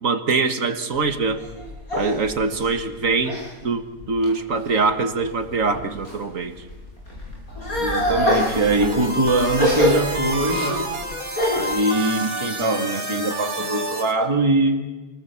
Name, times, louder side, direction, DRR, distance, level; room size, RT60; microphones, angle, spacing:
voice 1, 0.0-1.4 1.9-6.5, right 4 dB, 65° right, 7 dB, 1.9 m, -23 dB
sound 1, 0.9-3.5 4.0-4.6 5.2-6.2 6.6-11.7, left 1 dB, 85° left, 8.7 m, -25 dB
voice 2, 7.8-10.8 11.5-14.9, right 2 dB, 20° right, 3 dB, 1.8 m, -22 dB
sound 2, 8.4-14.1, right 1 dB, 85° right, 3.0 m, -29 dB
28.5 x 19.5 x 7.1 m, 1.2 s
omnidirectional pair, 1.5 m